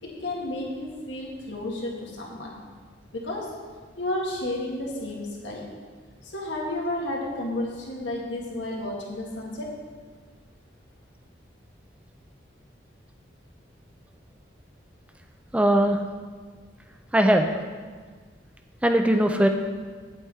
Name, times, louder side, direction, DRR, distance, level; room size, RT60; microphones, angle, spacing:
voice 1, 0.0-2.6 3.1-3.5 4.0-5.7 6.2-9.7, left 1 dB, 85° left, -3 dB, 2.0 m, -32 dB
voice 2, 15.5-16.0 17.1-17.5 18.8-19.5, right 1 dB, 5° right, 5 dB, 0.4 m, -19 dB
8.8 x 8.0 x 4.4 m, 1.5 s
head